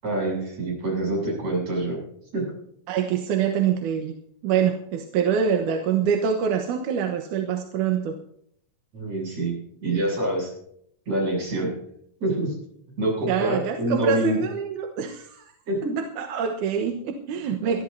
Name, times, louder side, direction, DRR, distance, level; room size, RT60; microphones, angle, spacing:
voice 1, 0.0-2.0 2.3-2.6 8.9-9.5 9.8-10.5 11.1-11.7 12.2-12.6 13.0-14.4 15.7-16.0 17.7-17.8, right 1 dB, 45° right, -1 dB, 8.8 m, -26 dB
voice 2, 2.9-4.2 4.4-8.1 13.3-15.4 16.0-17.8, right 8 dB, 65° right, 4 dB, 2.3 m, -25 dB
23.0 x 14.0 x 2.8 m, 0.68 s
omnidirectional pair, 4.3 m